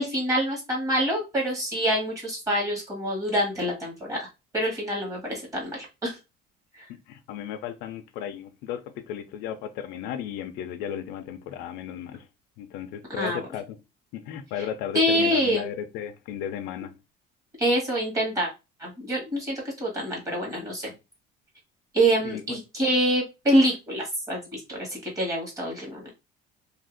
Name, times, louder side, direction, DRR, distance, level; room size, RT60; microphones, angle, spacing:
voice 1, 0.0-4.3 4.5-6.2 6.7-6.8 13.2-13.4 14.9-15.6 17.6-18.5 18.8-20.9 21.9-26.1, equal, 20° right, 1.5 m, -26 dB
voice 2, 7.1-12.3 12.6-13.8 14.1-16.9 22.2-22.6, left 9 dB, 75° left, 0.5 m, -35 dB
2.7 x 2.6 x 3.8 m
cardioid pair, 175°, 18 cm